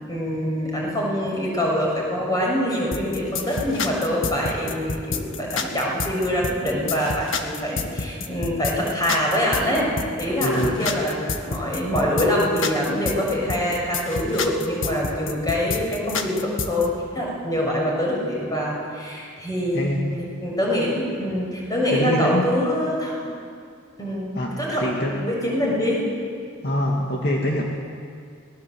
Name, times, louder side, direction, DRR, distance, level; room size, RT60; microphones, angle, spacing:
voice 1, 0.0-9.9 10.2-23.3 24.0-26.0, equal, 20° left, -3 dB, 6.8 m, -25 dB
sound 1, 2.9-16.9, left 4 dB, 80° left, 1.7 m, -29 dB
voice 2, 10.4-10.9 19.7-20.0 21.9-22.5 24.3-25.2 25.6-25.8 26.6-27.6, left 1 dB, 55° left, -1 dB, 2.4 m, -24 dB
25.5 x 19.5 x 7.9 m, 2.4 s
head